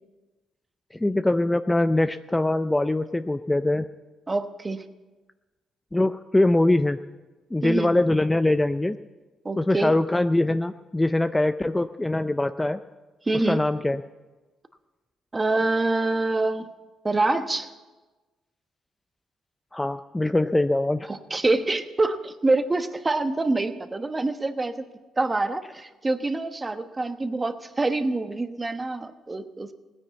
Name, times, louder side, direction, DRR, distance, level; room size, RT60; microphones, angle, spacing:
voice 1, 1.0-3.9 5.9-7.0 7.5-9.0 9.6-12.8 13.3-14.0 19.7-21.1, left 1 dB, 10° left, 10 dB, 0.4 m, -23 dB
voice 2, 4.3-4.8 7.6-7.9 9.4-9.9 13.2-13.6 15.3-16.7 17.0-17.7 21.1-24.9 25.2-29.7, right 2 dB, 20° right, 9 dB, 1.1 m, -26 dB
17.5 x 9.9 x 8.2 m, 1.2 s
cardioid pair, 90°, 0 cm